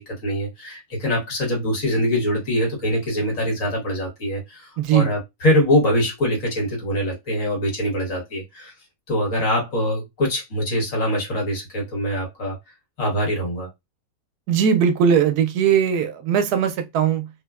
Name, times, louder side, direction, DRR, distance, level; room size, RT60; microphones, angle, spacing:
voice 1, 0.0-8.7 9.1-12.6 13.0-13.7, equal, 55° left, 1.5 m, -23 dB
voice 2, 4.8-5.1 14.5-17.3, right 8 dB, 85° right, 1.1 m, -19 dB
3.2 x 2.1 x 2.3 m
omnidirectional pair, 1.7 m